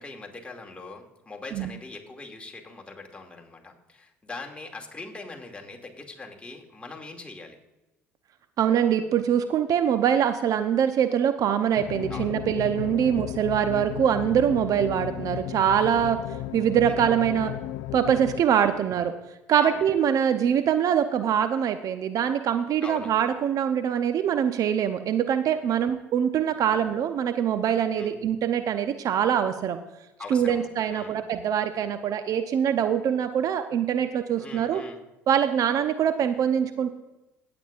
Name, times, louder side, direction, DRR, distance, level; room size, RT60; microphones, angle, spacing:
voice 1, 0.0-7.6 12.1-12.4 13.0-13.1 16.8-17.4 18.5-18.9 19.6-19.9 22.8-23.1 27.9-28.2 30.2-31.2 34.4-35.0, left 3 dB, 15° left, 1 dB, 2.4 m, -42 dB
voice 2, 8.6-16.2 16.5-17.5 17.9-19.1 19.5-29.8 30.3-34.8 35.3-36.9, right 9 dB, 55° right, 9 dB, 0.7 m, -24 dB
sound 1, 11.8-18.4, left 14 dB, 70° left, 0.4 m, -34 dB
17.5 x 8.7 x 2.5 m, 1.0 s
hypercardioid pair, 60°, 7 cm